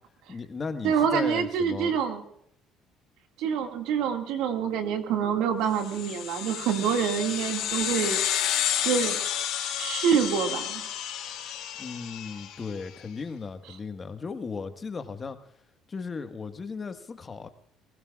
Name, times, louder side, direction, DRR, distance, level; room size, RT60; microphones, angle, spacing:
voice 1, 0.3-1.9 11.8-15.4 15.9-17.5, left 4 dB, 35° left, 7 dB, 1.5 m, -36 dB
voice 2, 0.8-2.2 3.4-8.2 8.8-9.2 9.8-10.8, right 7 dB, 75° right, 5 dB, 2.1 m, -26 dB
sound 1, 5.8-12.6, left 10 dB, 75° left, 3.9 m, -31 dB
22.0 x 19.5 x 2.4 m, 0.72 s
supercardioid pair, 75°, 0 cm